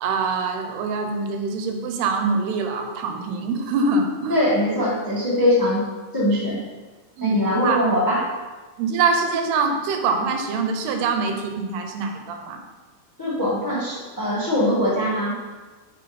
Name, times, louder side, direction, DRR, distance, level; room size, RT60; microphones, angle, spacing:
voice 1, 0.0-4.4 7.2-7.8 8.8-12.6, right 4 dB, 85° right, 5 dB, 2.9 m, -24 dB
voice 2, 4.3-5.8 6.1-6.6 7.2-8.2 13.2-15.3, left 1 dB, 25° left, -7 dB, 0.4 m, -22 dB
7.8 x 5.9 x 4.3 m, 1.3 s
omnidirectional pair, 4.5 m